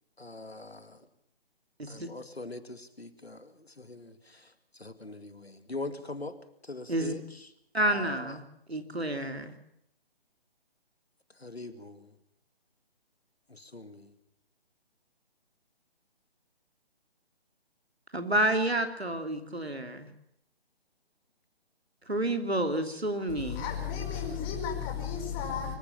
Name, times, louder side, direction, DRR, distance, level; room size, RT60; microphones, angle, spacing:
voice 1, 0.2-1.0 1.9-6.4 6.6-7.5 7.9-8.4 11.4-12.1 13.5-14.1, left 2 dB, 90° left, 11 dB, 2.3 m, -42 dB
voice 2, 7.7-8.4 8.7-9.5 18.1-20.1 22.1-23.6, right 1 dB, 90° right, 7 dB, 3.1 m, -29 dB
voice 3, 23.4-25.7, left 7 dB, 20° left, 1 dB, 5.0 m, -33 dB
25.0 x 15.5 x 7.4 m, 0.76 s
figure-of-eight pair, 145°, 31 cm